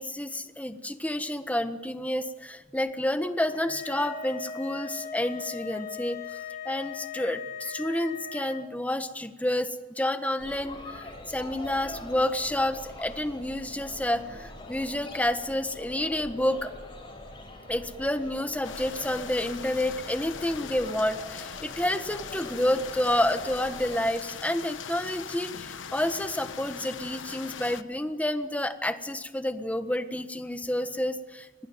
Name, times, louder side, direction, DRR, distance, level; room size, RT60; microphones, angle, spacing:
voice 1, 0.0-16.7 17.7-31.7, left 1 dB, 10° left, 9 dB, 1.3 m, -29 dB
sound 1, 3.5-8.6, left 6 dB, 45° left, 3.2 m, -39 dB
sound 2, 10.4-24.0, left 1 dB, 25° left, 6.4 m, -44 dB
sound 3, 18.6-27.8, left 7 dB, 80° left, 1.0 m, -41 dB
25.0 x 19.5 x 9.1 m, 1.2 s
head